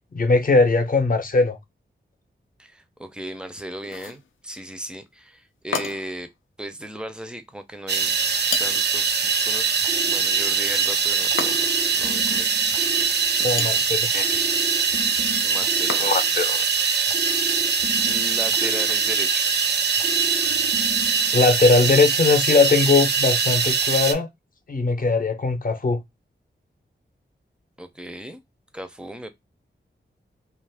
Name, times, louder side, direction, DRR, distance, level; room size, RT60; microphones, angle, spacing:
voice 1, 0.1-1.6 13.4-14.5 16.0-17.0 21.3-24.3 24.7-26.0, left 3 dB, 45° left, 0.7 m, -20 dB
voice 2, 2.6-6.3 6.6-8.1 8.6-11.7 11.9-13.0 13.5-13.9 15.4-16.1 18.0-20.0 27.8-28.4 28.7-29.3, right 1 dB, 5° right, 0.5 m, -37 dB
sound 1, 3.8-4.3 5.7-6.2 8.5-9.0 11.4-11.9 13.3-13.9 15.9-16.4, left 6 dB, 85° left, 0.5 m, -32 dB
sound 2, 7.9-24.1, right 6 dB, 60° right, 0.5 m, -22 dB
sound 3, 9.8-10.8 11.3-13.7 14.2-16.6 17.1-19.5 20.0-21.5, right 1 dB, 90° right, 0.9 m, -36 dB
2.4 x 2.3 x 3.3 m
wide cardioid pair, 100°, 20 cm